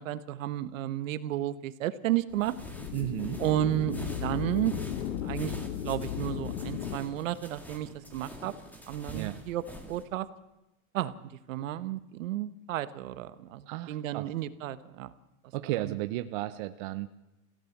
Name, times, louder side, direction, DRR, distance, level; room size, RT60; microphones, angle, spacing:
voice 1, 0.0-2.5 3.4-4.0 4.2-4.7 5.2-5.6 5.8-8.5 8.9-9.6 9.9-10.3 10.9-15.1, right 13 dB, 65° right, 13 dB, 1.4 m, -32 dB
sound 1, 2.3-10.0, equal, 5° left, 2.0 m, -46 dB
sound 2, 2.4-7.0, left 10 dB, 65° left, 1.8 m, -36 dB
voice 2, 2.9-3.4 9.1-9.4 13.7-14.3 15.5-17.1, right 15 dB, 35° right, 10 dB, 0.7 m, -34 dB
26.5 x 16.0 x 7.3 m, 0.97 s
supercardioid pair, 170°, 41 cm